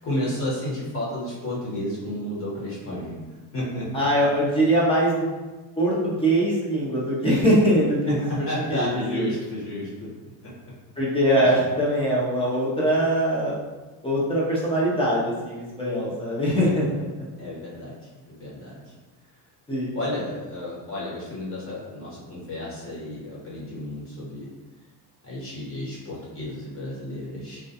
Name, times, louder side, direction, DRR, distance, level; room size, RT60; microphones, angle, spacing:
voice 1, 0.0-3.1 3.5-4.1 8.0-10.1 10.4-10.5 11.4-11.6 17.4-18.0 18.4-18.8 19.9-24.5 25.2-27.6, left 1 dB, 30° left, -7 dB, 1.0 m, -32 dB
voice 2, 3.9-5.3 5.8-8.3 8.7-9.3 11.0-13.5 14.0-17.0 19.7-19.9, equal, 15° left, -6 dB, 0.3 m, -22 dB
2.3 x 2.2 x 2.6 m, 1.2 s
cardioid pair, 135°, 44 cm